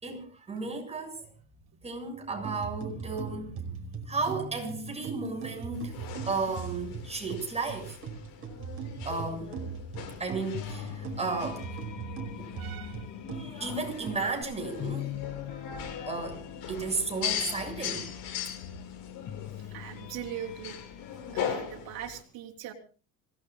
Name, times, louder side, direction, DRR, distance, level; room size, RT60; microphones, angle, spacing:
voice 1, 0.0-1.3 1.8-5.9 6.3-8.0 9.1-9.5 10.2-11.7 12.4-12.5 13.3-15.2 15.5-15.7 16.1-18.1, right 3 dB, 15° right, 6.9 m, -34 dB
sound 1, 2.4-14.4, right 6 dB, 35° right, 5.1 m, -40 dB
sound 2, 5.7-22.2, left 8 dB, 80° left, 7.3 m, -40 dB
sound 3, 10.3-21.6, left 11 dB, 55° left, 1.7 m, -43 dB
voice 2, 12.6-13.1 19.7-20.8 21.3-22.7, right 10 dB, 75° right, 3.6 m, -40 dB
27.0 x 18.5 x 2.4 m
cardioid pair, 130°, 37 cm